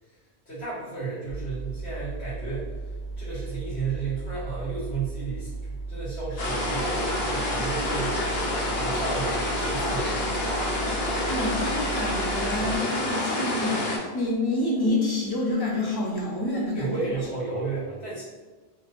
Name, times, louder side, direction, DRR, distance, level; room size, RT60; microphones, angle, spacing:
voice 1, 0.5-2.7 3.2-8.2 8.7-10.4 16.7-18.2, right 4 dB, 85° left, -10 dB, 1.9 m, -33 dB
sound 1, 1.3-12.8, right 3 dB, 5° left, 1.2 m, -36 dB
sound 2, 6.4-14.0, left 1 dB, 70° left, 0.9 m, -28 dB
voice 2, 11.0-17.1, left 1 dB, 30° left, -3 dB, 0.5 m, -28 dB
3.1 x 3.0 x 2.5 m, 1.3 s
omnidirectional pair, 1.1 m